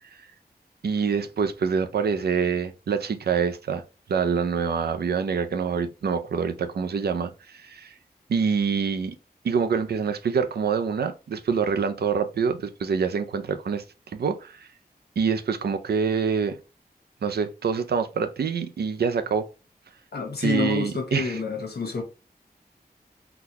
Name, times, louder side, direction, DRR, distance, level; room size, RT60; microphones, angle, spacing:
voice 1, 0.8-3.8 4.1-7.9 8.3-9.2 9.4-13.8 14.1-14.7 15.2-16.6 17.2-19.5 20.4-21.4, right 6 dB, 75° right, 0.4 m, -26 dB
voice 2, 20.1-22.0, left 4 dB, 80° left, 1.0 m, -28 dB
3.9 x 2.2 x 2.9 m
wide cardioid pair, 100°, 16 cm